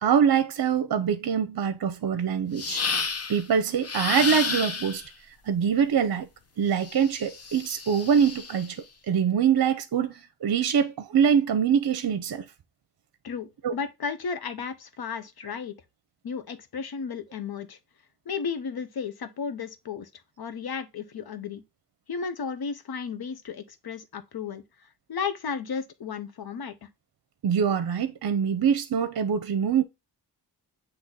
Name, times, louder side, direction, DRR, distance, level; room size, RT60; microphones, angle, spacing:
voice 1, 0.0-2.8 3.3-5.0 5.4-6.3 6.6-12.4 13.6-13.7 27.4-29.8, right 7 dB, 60° right, 0.7 m, -24 dB
sound 1, 2.6-3.4 3.8-5.1 6.8-8.7, left 4 dB, 35° left, 0.8 m, -31 dB
voice 2, 13.2-15.7 16.2-17.8 18.3-20.1 20.4-21.6 22.1-24.6 25.1-26.9, left 6 dB, 65° left, 0.9 m, -34 dB
8.0 x 3.0 x 3.9 m
wide cardioid pair, 130°, 41 cm